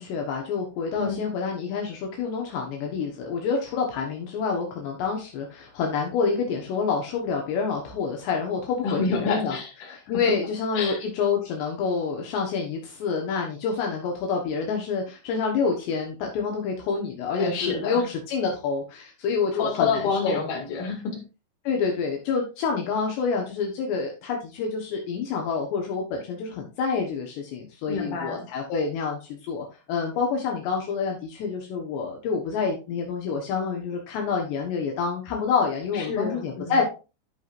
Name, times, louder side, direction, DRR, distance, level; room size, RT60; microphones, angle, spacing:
voice 1, 0.0-9.6 9.9-20.4 21.6-36.8, left 5 dB, 75° left, 1 dB, 3.2 m, -27 dB
voice 2, 0.9-1.2 8.8-10.2 10.7-11.0 17.4-18.0 19.5-21.2 27.9-28.5 35.9-36.7, left 5 dB, 50° left, 0 dB, 3.3 m, -28 dB
13.0 x 5.9 x 2.5 m, 0.30 s
omnidirectional pair, 5.2 m